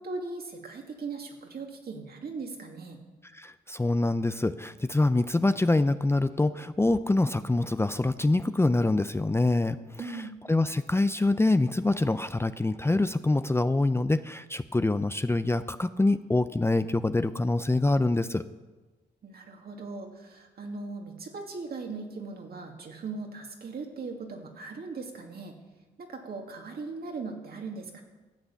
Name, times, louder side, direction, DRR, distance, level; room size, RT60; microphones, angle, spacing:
voice 1, 0.0-3.0 10.0-10.3 19.2-25.6 26.0-28.0, right 3 dB, 60° right, 2 dB, 2.4 m, -39 dB
voice 2, 3.3-9.8 10.1-10.2 10.5-18.4, left 2 dB, 15° left, 12 dB, 0.5 m, -25 dB
13.5 x 8.0 x 7.0 m, 1.2 s
supercardioid pair, 55°, 18 cm